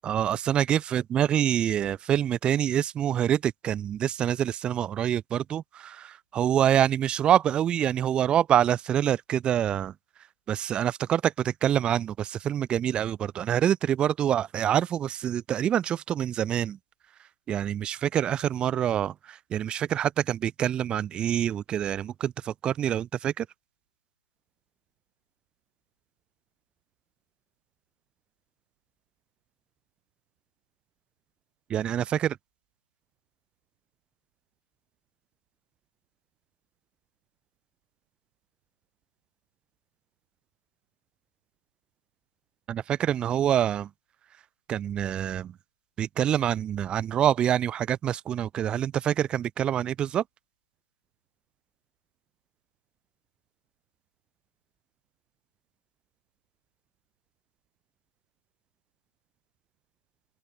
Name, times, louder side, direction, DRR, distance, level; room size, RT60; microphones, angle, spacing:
voice 1, 0.0-9.9 10.5-16.8 17.5-23.5 31.7-32.4 42.7-43.9 44.7-45.5 46.0-50.2, right 10 dB, 10° right, 0.6 m, -26 dB
open air
hypercardioid pair, 155°, 8 cm